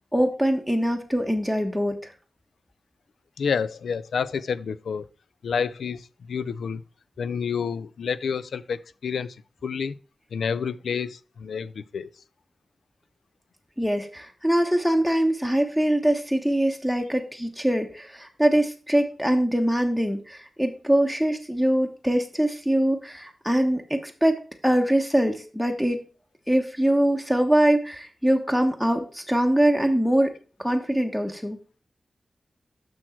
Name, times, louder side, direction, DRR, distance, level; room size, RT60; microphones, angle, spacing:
voice 1, 0.1-2.1 13.8-24.4 24.6-26.0 26.5-30.3 30.6-31.6, right 1 dB, 5° left, 1.1 m, -23 dB
voice 2, 3.4-5.1 5.4-6.8 7.2-9.4 9.6-10.0 10.3-12.1, left 6 dB, 85° left, 0.4 m, -29 dB
6.3 x 6.1 x 4.3 m
cardioid pair, 60°, 0 cm